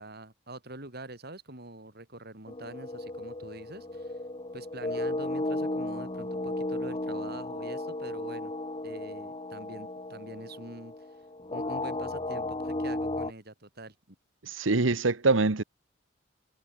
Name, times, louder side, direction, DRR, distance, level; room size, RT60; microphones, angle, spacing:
voice 1, 0.0-4.2 4.5-8.5 8.8-11.0 11.5-14.2, right 2 dB, 55° right, 5.6 m, -45 dB
sound 1, 2.5-13.3, left 2 dB, 30° left, 1.9 m, -35 dB
voice 2, 14.5-15.6, right 3 dB, 90° right, 1.2 m, -24 dB
head